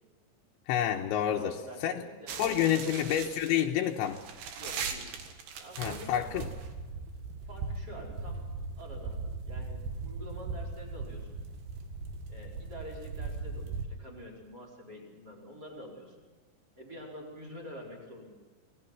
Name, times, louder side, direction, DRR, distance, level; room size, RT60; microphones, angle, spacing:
voice 1, 0.7-1.6 1.8-1.9 2.4-4.2 5.8-6.5, left 10 dB, 80° left, 1 dB, 3.3 m, -28 dB
voice 2, 1.4-3.1 4.5-5.1 5.6-6.5 7.5-8.4 8.8-9.2 9.4-11.4 12.3-16.2 16.8-18.3, equal, 20° right, 1 dB, 5.1 m, -47 dB
sound 1, 2.3-13.9, right 4 dB, 65° right, 3.6 m, -39 dB
28.5 x 20.0 x 6.0 m, 1.3 s
omnidirectional pair, 5.4 m